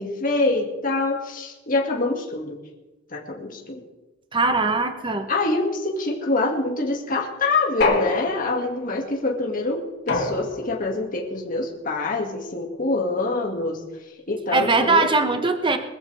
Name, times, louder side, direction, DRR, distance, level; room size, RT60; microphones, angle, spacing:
voice 1, 0.0-2.6 3.1-3.8 5.3-13.8 14.3-15.1, left 2 dB, 45° left, 0 dB, 2.3 m, -25 dB
voice 2, 4.3-5.3 14.5-15.8, right 3 dB, 25° right, 7 dB, 1.0 m, -21 dB
sound 1, 7.8-8.8 10.1-10.9, left 3 dB, 60° left, 2.8 m, -25 dB
21.5 x 14.5 x 3.5 m, 1.1 s
head